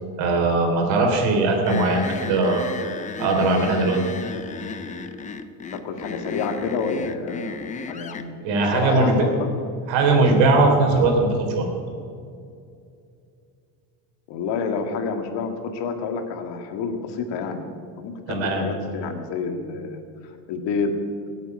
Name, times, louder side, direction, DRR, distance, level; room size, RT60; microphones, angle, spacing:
voice 1, 0.2-2.7 3.2-4.0 8.4-9.2 9.9-11.3 11.6-11.7 18.3-18.6, right 3 dB, 70° right, 2 dB, 3.8 m, -19 dB
sound 1, 1.7-8.3, left 5 dB, 15° left, 0.5 m, -34 dB
voice 2, 5.7-7.6 7.9-9.5 14.3-17.7 17.9-20.9, left 5 dB, 60° left, 5 dB, 2.0 m, -29 dB
17.0 x 8.3 x 9.3 m, 2.4 s
cardioid pair, 160°, 47 cm